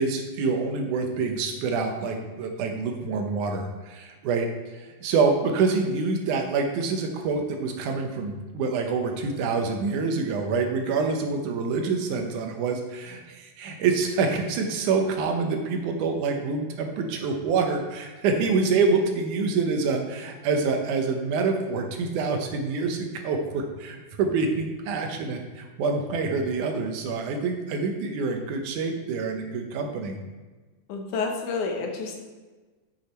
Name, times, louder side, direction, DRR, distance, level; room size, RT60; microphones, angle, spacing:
voice 1, 0.0-30.2, right 4 dB, 85° right, 4 dB, 2.5 m, -26 dB
voice 2, 30.9-32.2, left 4 dB, 80° left, 2 dB, 2.6 m, -29 dB
7.9 x 6.7 x 4.3 m, 1.3 s
omnidirectional pair, 3.4 m